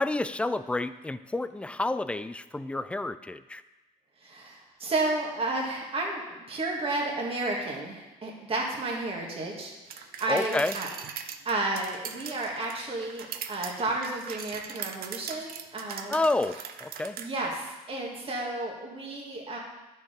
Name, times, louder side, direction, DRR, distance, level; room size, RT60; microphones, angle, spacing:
voice 1, 0.0-3.6 10.3-10.8 16.1-17.2, left 2 dB, 5° left, 13 dB, 0.3 m, -29 dB
voice 2, 4.2-10.9 11.4-16.2 17.2-19.6, right 2 dB, 35° right, -1 dB, 1.9 m, -32 dB
sound 1, 9.9-17.3, right 8 dB, 60° right, 0.7 m, -40 dB
10.5 x 4.6 x 5.2 m, 1.2 s
cardioid pair, 110°, 17 cm